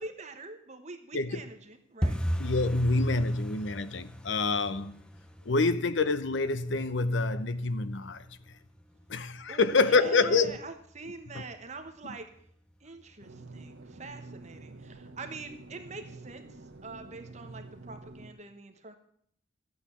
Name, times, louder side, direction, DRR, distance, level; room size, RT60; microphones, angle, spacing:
voice 1, 0.0-2.2 9.5-12.3 12.8-18.9, right 3 dB, 35° right, 1.2 m, -44 dB
sound 1, 2.0-12.7 13.0-13.7 13.9-14.2 14.5-14.9 15.2-15.3 15.8-16.3 16.7-16.8 17.3-17.4, equal, 5° left, 0.6 m, -39 dB
voice 2, 2.4-5.0 5.4-8.4 9.1-10.6 11.3-11.4, left 3 dB, 70° left, 0.7 m, -27 dB
sound 2, 13.2-18.3, right 2 dB, 75° right, 0.9 m, -48 dB
12.5 x 8.7 x 7.0 m
head